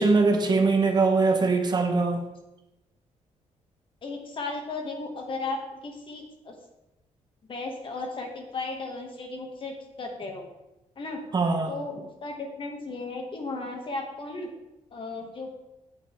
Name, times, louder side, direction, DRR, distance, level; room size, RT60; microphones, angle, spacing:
voice 1, 0.0-2.2 11.3-11.8, right 3 dB, 35° right, 4 dB, 1.1 m, -22 dB
voice 2, 4.0-5.6 5.8-6.6 7.5-10.4 11.0-11.2 11.7-14.5 14.9-15.5, left 3 dB, 45° left, 2 dB, 1.9 m, -35 dB
8.4 x 8.0 x 4.8 m, 0.96 s
cardioid pair, 130°, 13 cm